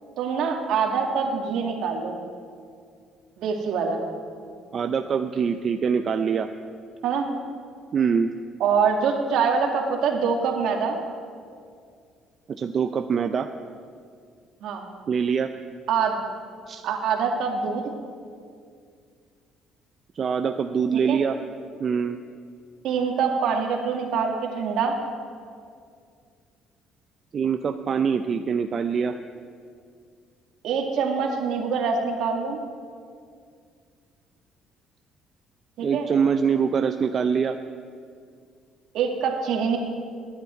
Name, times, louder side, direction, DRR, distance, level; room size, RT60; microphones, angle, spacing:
voice 1, 0.2-2.2 3.4-4.0 7.0-7.3 8.6-11.0 14.6-14.8 15.9-16.2 16.8-17.8 21.1-21.2 22.8-24.9 30.6-32.6 35.8-36.1 38.9-39.8, right 6 dB, 60° right, 2 dB, 2.1 m, -24 dB
voice 2, 4.7-6.5 7.9-8.3 12.5-13.5 15.1-15.5 16.7-16.8 20.2-21.4 21.8-22.2 27.3-29.2 35.8-37.6, right 6 dB, 35° right, 7 dB, 0.4 m, -24 dB
11.0 x 9.9 x 9.3 m, 2.2 s
cardioid pair, 155°, 0 cm